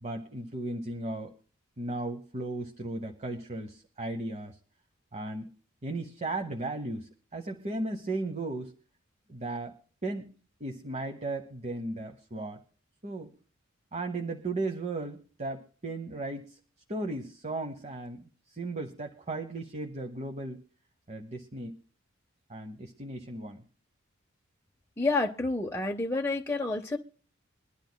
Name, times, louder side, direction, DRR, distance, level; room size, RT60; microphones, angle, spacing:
voice 1, 0.0-1.3 1.8-4.6 5.1-5.5 5.8-8.7 9.3-9.7 10.0-10.3 10.6-12.6 13.0-13.3 13.9-16.6 16.9-20.6 21.1-21.8 22.5-23.6, right 2 dB, 35° right, 5 dB, 0.9 m, -36 dB
voice 2, 25.0-27.0, left 3 dB, 15° left, 0 dB, 0.7 m, -29 dB
23.0 x 11.5 x 2.2 m, 0.41 s
head